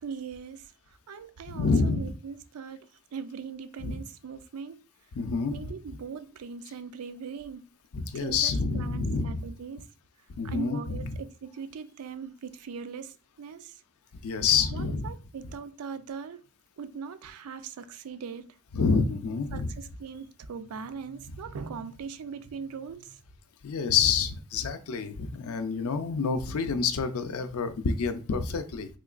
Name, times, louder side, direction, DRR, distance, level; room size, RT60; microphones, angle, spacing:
voice 1, 0.0-4.9 5.5-7.7 8.1-9.9 10.4-13.8 14.7-16.5 16.8-18.5 19.5-23.2, right 6 dB, 85° right, 0.4 m, -40 dB
voice 2, 1.5-2.1 3.8-4.0 5.1-5.5 7.9-9.5 10.4-11.2 14.2-15.1 18.7-19.7 23.6-28.9, left 5 dB, 75° left, 0.5 m, -28 dB
3.7 x 2.9 x 2.4 m
head